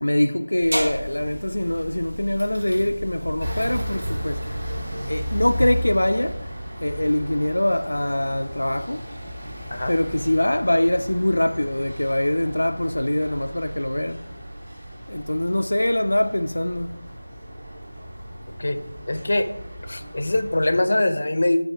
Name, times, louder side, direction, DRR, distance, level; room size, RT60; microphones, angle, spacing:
voice 1, 0.0-4.5 5.0-6.5 6.8-9.0 9.9-14.3 15.1-17.0, left 1 dB, 80° left, 0.4 m, -23 dB
sound 1, 0.6-5.8, equal, 80° right, 2.2 m, -33 dB
sound 2, 3.4-20.8, equal, 50° right, 2.8 m, -35 dB
voice 2, 18.5-18.8 19.1-19.5 19.8-21.6, left 1 dB, 40° left, 0.6 m, -23 dB
5.6 x 5.2 x 5.8 m
figure-of-eight pair, 175°, 0 cm